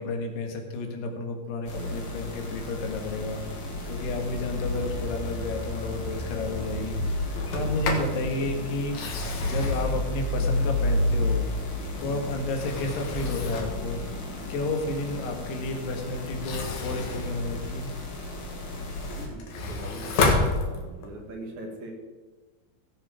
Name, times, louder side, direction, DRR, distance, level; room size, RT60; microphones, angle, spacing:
voice 1, 0.0-11.5 12.0-14.0 14.5-17.9, left 2 dB, 90° left, 3 dB, 3.7 m, -32 dB
sound 1, 1.7-19.3, left 1 dB, 40° left, 1.9 m, -32 dB
voice 2, 1.7-2.0 7.5-7.7 19.2-20.3 20.6-22.0, right 2 dB, 55° right, 1 dB, 2.8 m, -41 dB
Sliding door, 7.4-8.2 8.8-11.2 11.7-13.9 16.3-18.2 18.7-21.2, left 3 dB, 55° left, 2.7 m, -31 dB
17.0 x 7.8 x 5.0 m, 1.3 s
omnidirectional pair, 4.6 m